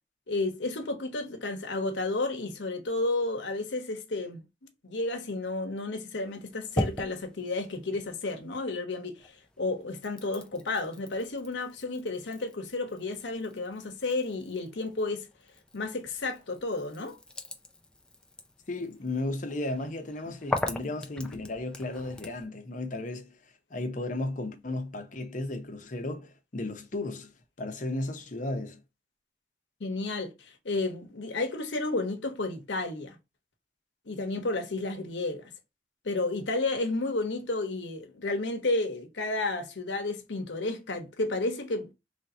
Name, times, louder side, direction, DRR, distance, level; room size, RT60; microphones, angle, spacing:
voice 1, 0.3-4.4 4.8-15.3 15.7-17.2 29.8-33.2 34.1-35.4 36.0-41.9, left 2 dB, 80° left, 0.9 m, -32 dB
sound 1, 6.2-8.8 9.2-22.4, left 1 dB, 5° left, 0.4 m, -40 dB
voice 2, 18.7-23.3 23.7-28.8, left 2 dB, 45° left, 0.7 m, -34 dB
3.2 x 2.7 x 4.1 m
head